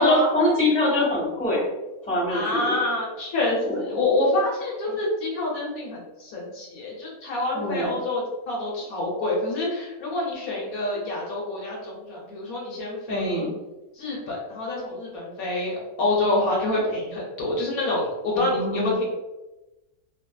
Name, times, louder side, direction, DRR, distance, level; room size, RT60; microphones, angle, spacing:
voice 1, 0.0-1.6 2.1-2.6 3.7-3.8 7.5-7.9 13.1-13.5 18.3-19.0, left 1 dB, 5° left, -6 dB, 0.6 m, -23 dB
voice 2, 2.3-13.5 14.0-19.1, left 2 dB, 65° left, -4 dB, 1.1 m, -27 dB
2.5 x 2.5 x 2.2 m, 1.0 s
omnidirectional pair, 1.7 m